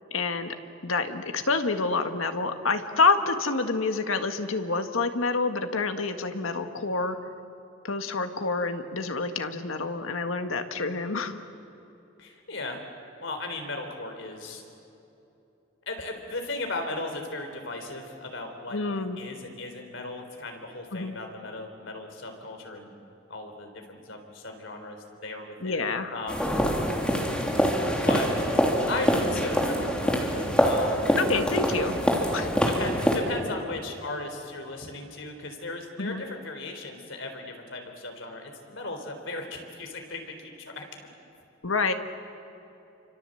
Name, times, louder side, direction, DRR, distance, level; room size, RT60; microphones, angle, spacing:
voice 1, 0.1-0.6 0.8-7.2 7.8-11.4 18.7-19.2 20.9-21.1 25.6-26.1 31.2-32.0 32.3-32.5 36.0-36.2 41.6-41.9, left 3 dB, 85° left, 7 dB, 1.7 m, -27 dB
voice 2, 12.2-12.8 13.2-14.6 15.9-23.0 23.3-25.8 26.1-27.0 28.0-28.3 28.9-31.1 32.6-40.9, left 2 dB, 65° left, 4 dB, 3.9 m, -37 dB
sound 1, 26.3-33.2, equal, 5° left, 3.2 m, -25 dB
29.5 x 25.5 x 7.8 m, 2.9 s
head